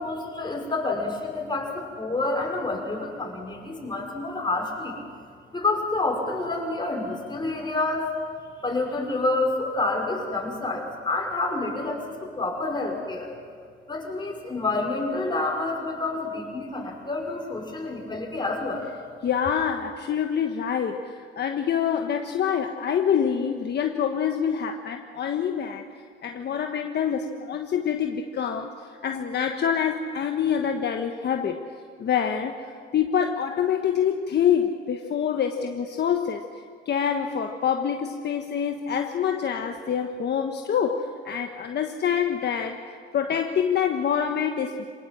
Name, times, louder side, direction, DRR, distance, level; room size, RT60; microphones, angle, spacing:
voice 1, 0.0-5.0 5.5-8.1 8.6-13.3 13.9-18.9, left 2 dB, 20° left, 0 dB, 5.8 m, -28 dB
voice 2, 19.2-25.8 26.2-28.7 29.0-31.7 32.0-32.6 32.9-36.4 36.8-42.8 43.1-44.8, left 8 dB, 60° left, 4 dB, 1.3 m, -26 dB
26.5 x 19.0 x 7.7 m, 2.1 s
cardioid pair, 90°, 20 cm